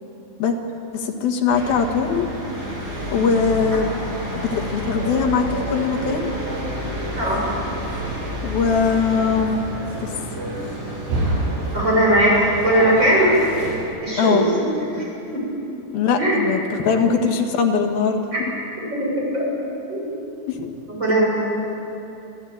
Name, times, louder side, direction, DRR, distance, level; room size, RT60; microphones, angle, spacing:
voice 1, 0.9-2.3 3.1-3.9 4.4-6.3 8.4-9.6 10.0-10.1 14.2-14.5 15.9-18.3 20.5-20.7, left 5 dB, 75° left, 4 dB, 3.5 m, -21 dB
sound 1, 1.5-13.7, right 1 dB, 70° right, 9.2 m, -28 dB
voice 2, 11.7-13.3 14.0-14.7 15.3-15.4 16.2-16.5 17.0-17.1 18.3-18.4 19.0-19.4 19.9-20.1 20.9-21.3, right 1 dB, 25° right, -4 dB, 7.2 m, -19 dB
25.5 x 15.5 x 9.3 m, 2.9 s
omnidirectional pair, 4.3 m